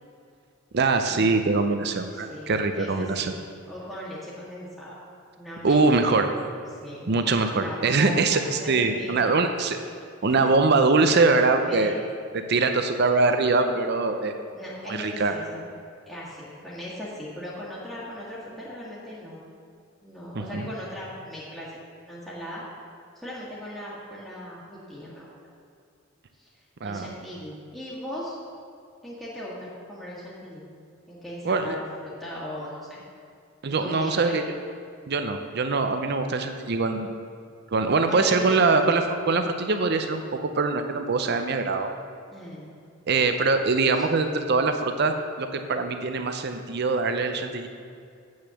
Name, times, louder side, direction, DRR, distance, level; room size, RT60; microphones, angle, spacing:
voice 1, 0.7-3.3 5.6-6.3 7.1-9.8 10.2-11.9 12.3-14.3 14.9-15.3 20.5-20.7 26.8-27.1 31.4-31.8 33.6-34.4 35.1-37.1 37.7-41.9 43.1-47.7, right 3 dB, 55° right, 7 dB, 0.6 m, -23 dB
voice 2, 2.1-3.4 3.7-5.0 5.4-6.2 6.7-9.4 10.2-10.3 11.7-12.0 14.5-15.7 16.1-19.4 20.0-21.7 22.1-22.6 23.2-25.3 26.3-26.5 26.8-28.4 29.0-30.7 31.1-33.0 33.7-34.4 38.1-38.7 42.3-42.7 43.9-44.1, equal, ahead, -9 dB, 1.6 m, -38 dB
8.2 x 6.3 x 7.0 m, 2.4 s
head